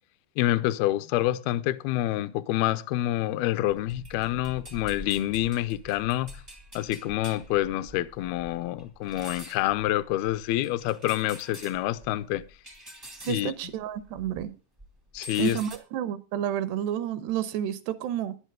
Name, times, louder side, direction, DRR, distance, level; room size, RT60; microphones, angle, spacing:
voice 1, 0.4-6.3 6.8-12.4 13.3-13.5 15.1-15.6, left 14 dB, 80° left, 2.3 m, -27 dB
sound 1, 3.7-14.5 14.8-15.8, equal, 20° right, 0.6 m, -46 dB
voice 2, 13.3-14.5 15.4-18.4, right 10 dB, 75° right, 2.9 m, -30 dB
14.5 x 11.0 x 3.7 m
omnidirectional pair, 5.2 m